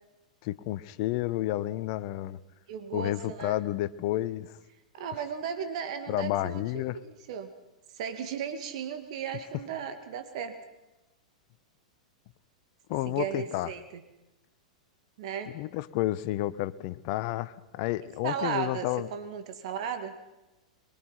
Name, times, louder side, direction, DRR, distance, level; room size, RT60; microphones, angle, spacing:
voice 1, 0.4-2.4 2.9-4.6 6.1-7.0 12.9-13.7 15.5-19.1, left 15 dB, 50° left, 16 dB, 1.1 m, -31 dB
voice 2, 2.7-3.6 4.9-6.6 7.0-7.5 7.9-10.6 13.1-13.8 15.2-15.5 18.2-20.1, right 7 dB, 55° right, 8 dB, 2.3 m, -35 dB
23.0 x 23.0 x 5.9 m, 1.0 s
figure-of-eight pair, 100°, 4 cm